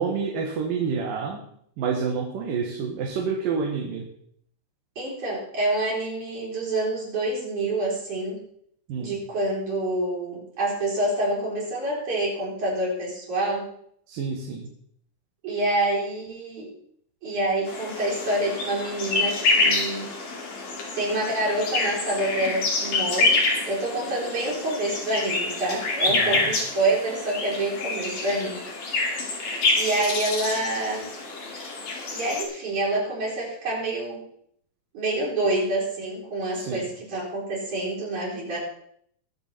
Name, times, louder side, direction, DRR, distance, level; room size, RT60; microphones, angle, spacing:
voice 1, 0.0-1.4 1.8-4.0 8.9-9.2 14.1-14.7 26.1-26.5 36.5-36.8, right 5 dB, 80° right, 0 dB, 3.3 m, -28 dB
voice 2, 5.0-8.4 9.0-13.7 15.4-16.7 17.2-20.1 20.9-28.6 29.5-31.1 32.1-34.2 34.9-38.6, right 1 dB, 60° right, -6 dB, 5.8 m, -27 dB
sound 1, 17.7-32.4, left 3 dB, 70° left, 4.4 m, -27 dB
22.5 x 7.5 x 4.2 m, 0.66 s
omnidirectional pair, 3.8 m